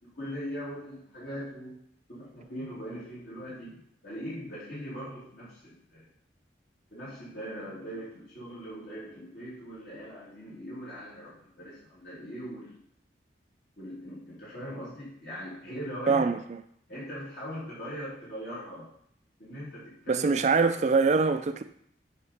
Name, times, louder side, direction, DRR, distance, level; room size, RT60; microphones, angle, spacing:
voice 1, 0.0-1.8 2.1-6.1 6.9-12.8 13.8-16.4 16.9-18.9 19.4-20.3, equal, 60° left, -8 dB, 2.7 m, -40 dB
voice 2, 16.1-16.4 20.1-21.6, right 4 dB, 40° right, 10 dB, 0.3 m, -23 dB
6.8 x 5.1 x 4.2 m, 0.65 s
head